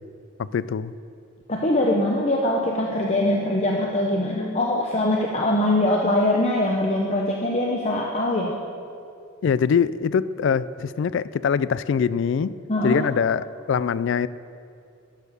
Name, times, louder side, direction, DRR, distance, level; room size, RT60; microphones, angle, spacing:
voice 1, 0.4-0.9 9.4-12.5 12.8-14.3, left 6 dB, 60° left, 17 dB, 0.3 m, -23 dB
voice 2, 1.5-8.6 12.7-13.0, left 1 dB, 30° left, -1 dB, 0.7 m, -22 dB
12.0 x 6.6 x 6.7 m, 2.6 s
head